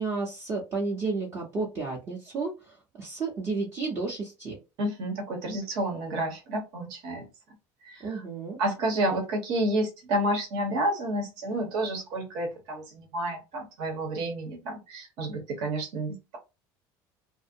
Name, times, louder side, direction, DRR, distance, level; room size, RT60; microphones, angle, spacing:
voice 1, 0.0-4.6 8.0-8.6, right 4 dB, 25° right, 0.6 m, -32 dB
voice 2, 4.8-7.3 7.8-8.2 8.6-16.4, right 1 dB, 60° right, 1.0 m, -30 dB
2.5 x 2.0 x 2.6 m
cardioid pair, 170°, 9 cm